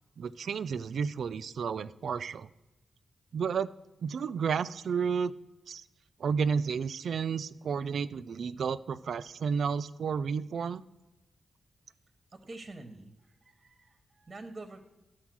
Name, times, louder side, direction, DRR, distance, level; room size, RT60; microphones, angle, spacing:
voice 1, 0.2-2.5 3.3-3.7 4.0-5.3 5.7-5.8 6.2-10.8, right 6 dB, 75° right, 14 dB, 0.3 m, -31 dB
voice 2, 12.3-14.8, right 2 dB, 35° right, 5 dB, 1.0 m, -47 dB
12.0 x 4.4 x 6.1 m, 0.99 s
cardioid pair, 80°, 0 cm